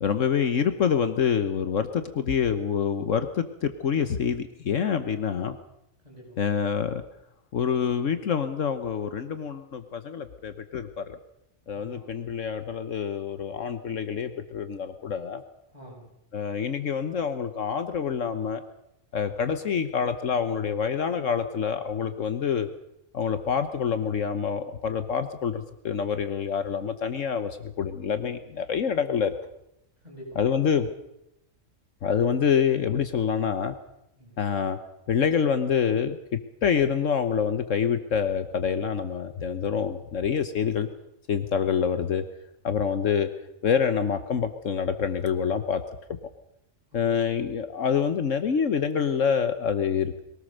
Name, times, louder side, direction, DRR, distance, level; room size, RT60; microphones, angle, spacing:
voice 1, 0.0-5.6 6.4-7.0 7.5-11.2 11.7-15.4 16.3-18.6 19.1-22.7 23.1-29.3 30.4-30.9 32.0-33.7 34.4-34.8 35.1-40.9 41.3-42.2 42.6-43.3 43.6-45.8 46.9-50.2, left 7 dB, 70° left, 9 dB, 1.4 m, -26 dB
voice 2, 6.0-6.5 11.7-12.3 15.7-16.1 30.0-30.6 34.1-34.4 46.9-47.4, right 1 dB, 30° right, -2 dB, 7.3 m, -48 dB
22.5 x 18.5 x 6.6 m, 0.83 s
omnidirectional pair, 1.4 m